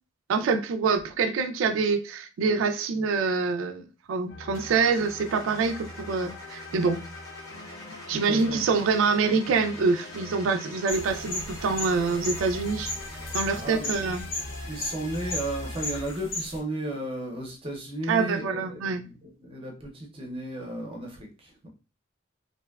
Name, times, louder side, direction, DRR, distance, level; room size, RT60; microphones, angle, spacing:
voice 1, 0.3-7.0 8.1-12.9 13.3-14.2 18.1-19.0, right 4 dB, 80° right, 0.3 m, -25 dB
sound 1, 4.3-16.0, left 1 dB, 60° left, 0.6 m, -41 dB
Car / Engine starting, 4.5-13.8, left 1 dB, 15° left, 0.7 m, -47 dB
voice 2, 7.8-8.6 13.6-13.9 14.7-21.7, right 1 dB, 25° right, 0.5 m, -34 dB
sound 2, 10.9-16.6, left 2 dB, 85° left, 0.8 m, -36 dB
2.6 x 2.2 x 2.2 m
head